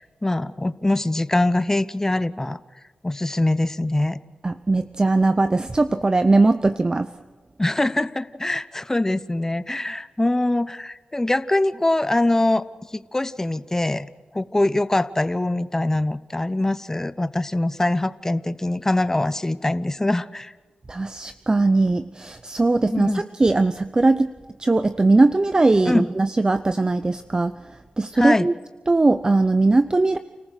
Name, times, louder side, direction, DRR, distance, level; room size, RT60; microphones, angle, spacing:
voice 1, 0.0-2.6 3.0-4.2 7.6-12.6 12.9-14.1 14.3-20.5 22.9-23.2 25.9-26.0 28.1-28.5, left 1 dB, 20° left, 14 dB, 0.9 m, -23 dB
voice 2, 4.4-7.1 20.9-24.3 24.6-27.5 28.0-28.5 28.9-30.2, right 2 dB, 30° right, 12 dB, 0.7 m, -19 dB
29.5 x 14.5 x 6.4 m, 1.3 s
cardioid pair, 50°, 2 cm